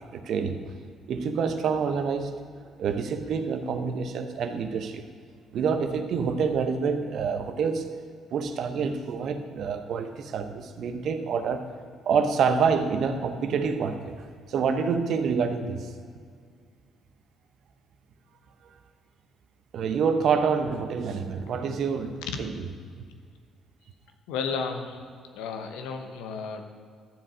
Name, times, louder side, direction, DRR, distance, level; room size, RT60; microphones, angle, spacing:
voice 1, 0.1-0.6 1.1-2.3 2.8-5.0 5.5-7.9 8.3-11.7 12.1-15.9 19.7-22.7, right 6 dB, 60° right, 8 dB, 0.8 m, -27 dB
voice 2, 24.3-25.0 25.3-26.6, left 5 dB, 75° left, 5 dB, 0.9 m, -33 dB
12.0 x 7.5 x 5.0 m, 2.1 s
hypercardioid pair, 50°, 0 cm